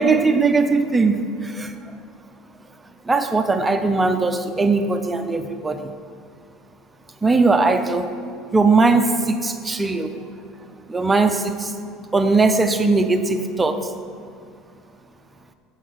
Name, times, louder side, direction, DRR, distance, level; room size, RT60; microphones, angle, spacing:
voice 1, 0.0-1.7 3.1-5.9 7.2-8.1 8.5-10.1 10.9-11.7 12.1-13.9, right 3 dB, 10° right, 7 dB, 0.4 m, -19 dB
7.1 x 6.4 x 7.7 m, 2.3 s
cardioid pair, 160°, 0 cm